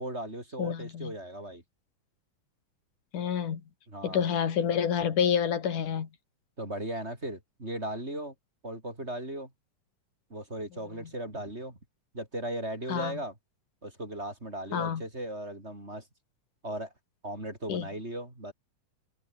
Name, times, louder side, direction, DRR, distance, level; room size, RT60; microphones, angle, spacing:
voice 1, 0.0-1.6 3.9-4.2 6.6-8.3 8.6-9.5 10.3-11.8 12.1-13.3 13.8-16.0 16.6-16.9 17.2-18.5, right 1 dB, 20° right, 5.5 m, -37 dB
voice 2, 0.6-1.1 3.1-3.6 4.0-6.1 12.9-13.2 14.7-15.0 17.7-17.9, left 8 dB, 85° left, 4.1 m, -28 dB
omnidirectional pair, 3.6 m